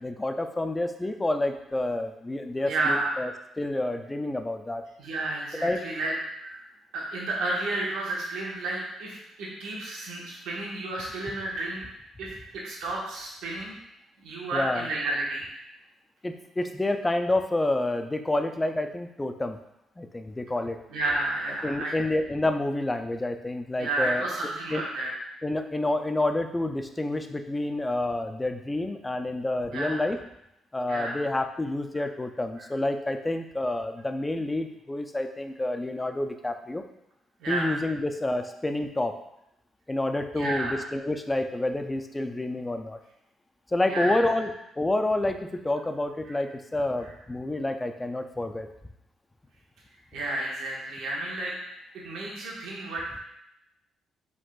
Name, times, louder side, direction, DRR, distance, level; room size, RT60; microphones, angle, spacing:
voice 1, 0.0-3.3 3.6-4.8 5.6-5.8 14.5-14.9 16.2-19.6 20.0-20.8 21.6-24.3 24.7-24.8 25.4-30.2 30.7-36.8 37.5-39.2 39.9-43.0 43.7-44.5 44.8-48.7, left 2 dB, 15° left, 6 dB, 0.4 m, -28 dB
voice 2, 2.6-3.2 5.0-6.1 6.4-6.6 6.9-11.8 12.2-13.7 14.2-15.4 20.9-21.9 23.8-25.1 29.7-30.0 30.9-31.1 37.4-37.7 40.4-40.8 43.9-44.2 46.3-46.4 50.1-51.5 51.9-53.2, right 2 dB, 85° right, -4 dB, 1.3 m, -31 dB
4.9 x 3.8 x 2.4 m, 0.82 s
cardioid pair, 90°, 0 cm